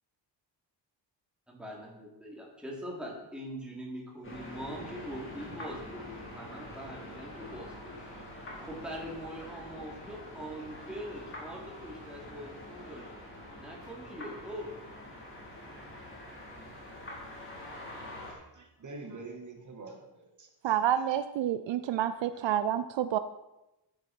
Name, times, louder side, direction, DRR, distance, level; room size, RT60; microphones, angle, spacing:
voice 1, 1.5-8.2 8.6-13.1 13.6-14.7, equal, ahead, -4 dB, 3.5 m, -42 dB
sound 1, 4.2-18.3, left 1 dB, 25° left, 4.1 m, -45 dB
voice 2, 18.3-20.8 21.0-21.2 22.3-22.4, right 3 dB, 40° right, 2 dB, 2.1 m, -46 dB
voice 3, 20.6-23.2, right 11 dB, 70° right, 11 dB, 0.7 m, -29 dB
14.0 x 10.5 x 4.6 m, 0.97 s
wide cardioid pair, 165°, 45 cm